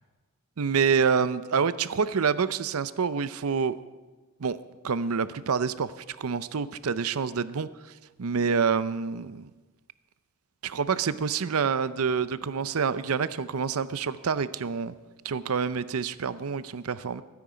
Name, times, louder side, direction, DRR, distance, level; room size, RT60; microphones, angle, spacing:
voice 1, 0.6-3.8 4.4-4.6 4.8-7.7 8.2-9.5 10.6-14.9 15.2-17.2, right 6 dB, 80° right, 15 dB, 0.6 m, -27 dB
22.5 x 9.6 x 5.0 m, 1.3 s
head